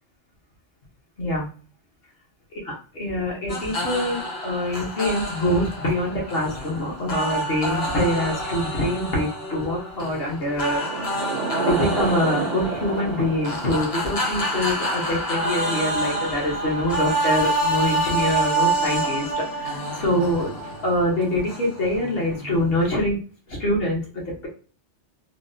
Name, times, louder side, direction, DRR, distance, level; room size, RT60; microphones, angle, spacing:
voice 1, 1.2-1.5 2.6-11.3 11.7-20.5 20.8-23.2 23.5-24.0, left 1 dB, 55° left, -3 dB, 1.1 m, -25 dB
sound 1, 3.5-23.0, right 1 dB, 40° left, 0.6 m, -28 dB
Thunder / Rain, 10.5-21.1, right 5 dB, 85° right, 0.9 m, -34 dB
3.4 x 2.1 x 2.6 m, 0.38 s
omnidirectional pair, 1.2 m